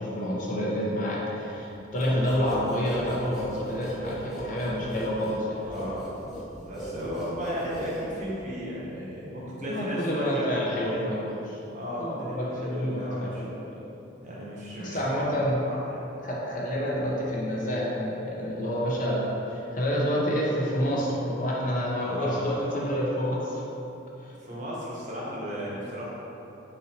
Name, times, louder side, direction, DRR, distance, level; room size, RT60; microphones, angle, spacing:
voice 1, 0.0-5.9 9.6-11.3 12.0-13.6 14.8-15.6 16.2-23.6 24.2-24.3, equal, 40° left, -4 dB, 0.6 m, -28 dB
sound 1, 2.0-8.5, equal, ahead, 0.5 m, -38 dB
voice 2, 5.6-6.4 6.7-11.2 11.7-13.4 14.2-15.0 15.6-16.0 22.0-22.4 24.4-26.1, equal, 40° right, -7 dB, 0.9 m, -35 dB
4.2 x 4.0 x 2.8 m, 3.0 s
head